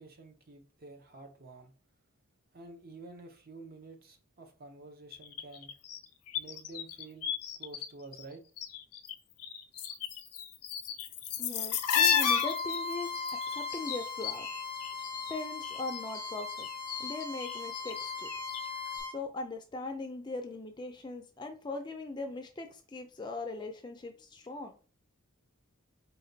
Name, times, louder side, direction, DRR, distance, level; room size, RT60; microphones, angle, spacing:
voice 1, 0.0-1.7 2.5-5.7 6.4-7.3 7.6-8.4, right 3 dB, 40° right, 0.6 m, -50 dB
sound 1, 5.1-7.9 8.1-9.1 9.4-15.3 15.6-18.7 18.9-19.0, left 7 dB, 85° left, 0.5 m, -33 dB
voice 2, 11.4-14.5 15.3-16.7 17.0-18.3 19.1-24.8, left 3 dB, 20° left, 0.4 m, -40 dB
Bowed string instrument, 12.1-19.1, left 4 dB, 75° right, 1.6 m, -39 dB
4.2 x 2.2 x 3.9 m
head